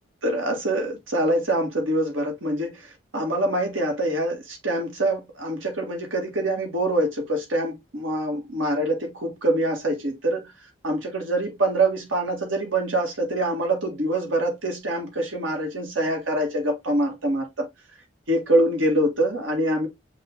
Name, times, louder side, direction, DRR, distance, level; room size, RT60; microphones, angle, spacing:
voice 1, 0.2-10.5 10.8-17.7 18.3-19.9, right 1 dB, 75° right, 1.8 m, -25 dB
5.5 x 2.6 x 3.5 m
head